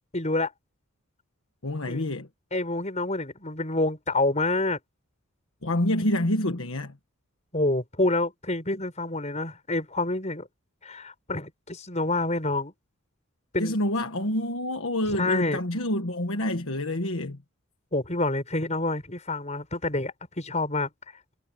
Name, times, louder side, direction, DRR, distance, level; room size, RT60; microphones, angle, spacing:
voice 1, 0.1-0.5 1.9-2.0 2.5-4.8 7.5-10.5 10.8-12.7 13.5-13.8 15.2-15.6 17.9-20.9, left 2 dB, 30° left, 5.7 m, -27 dB
voice 2, 1.6-2.3 5.6-7.0 13.6-17.4, left 1 dB, 65° left, 1.5 m, -27 dB
head